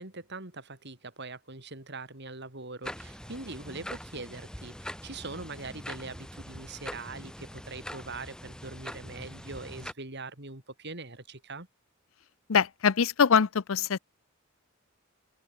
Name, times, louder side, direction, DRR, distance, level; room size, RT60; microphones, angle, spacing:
voice 1, 0.0-11.7, right 3 dB, 55° right, 4.7 m, -42 dB
sound 1, 2.8-9.9, equal, 5° left, 2.4 m, -43 dB
voice 2, 12.5-14.0, left 6 dB, 75° left, 0.6 m, -23 dB
open air
head